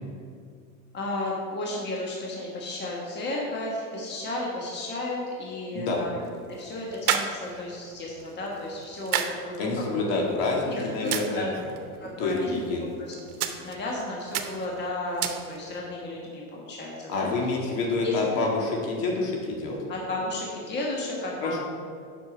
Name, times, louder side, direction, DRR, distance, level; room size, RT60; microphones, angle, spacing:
voice 1, 0.9-10.2 10.6-11.5 12.0-13.1 13.6-17.3 18.0-18.2 19.9-21.6, left 2 dB, 25° left, -3 dB, 1.4 m, -33 dB
sound 1, 5.8-15.9, right 9 dB, 80° right, 0.9 m, -35 dB
voice 2, 9.6-11.5 12.2-12.8 17.1-19.8 21.4-21.6, left 3 dB, 55° left, -1 dB, 2.1 m, -27 dB
7.2 x 5.9 x 5.2 m, 2.2 s
supercardioid pair, 115°, 44 cm